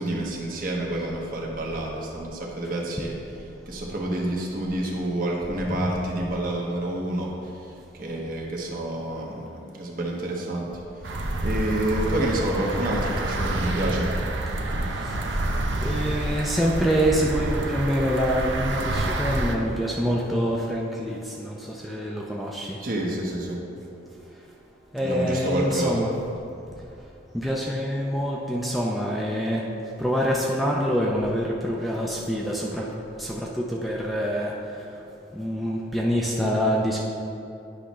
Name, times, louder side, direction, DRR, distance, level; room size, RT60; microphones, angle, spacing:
voice 1, 0.0-3.1 3.7-7.3 7.9-10.7 11.4-15.9 22.8-23.6 25.0-26.0, right 1 dB, 50° right, -2 dB, 1.1 m, -29 dB
voice 2, 5.5-6.0 11.0-11.3 14.8-15.4 15.8-22.8 24.9-26.2 26.7-26.8 27.3-29.7 30.0-32.9 33.2-35.0 35.3-37.0, equal, ahead, -3 dB, 0.5 m, -26 dB
sound 1, 11.0-19.6, right 1 dB, 75° right, 0.6 m, -28 dB
9.9 x 5.7 x 3.1 m, 2.8 s
head